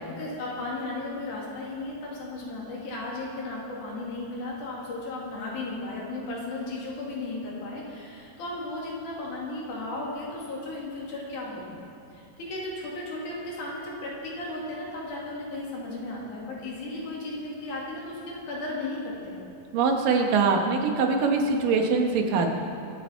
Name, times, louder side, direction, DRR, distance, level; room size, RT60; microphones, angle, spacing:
voice 1, 0.0-11.8 12.1-19.5, left 2 dB, 70° left, -4 dB, 3.8 m, -35 dB
voice 2, 19.7-22.5, right 4 dB, 90° right, 3 dB, 2.9 m, -23 dB
24.0 x 8.2 x 4.5 m, 2.6 s
omnidirectional pair, 3.8 m